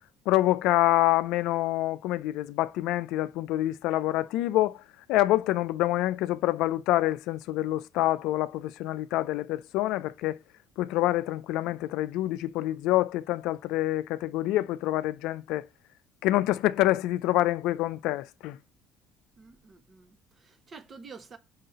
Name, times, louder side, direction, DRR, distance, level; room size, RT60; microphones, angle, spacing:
voice 1, 0.3-4.8 5.1-10.4 10.8-15.7 16.2-18.6, left 15 dB, 70° left, 0.4 m, -26 dB
voice 2, 19.4-21.4, right 4 dB, 40° right, 1.2 m, -49 dB
5.5 x 3.8 x 5.5 m
hypercardioid pair, 65°, 0 cm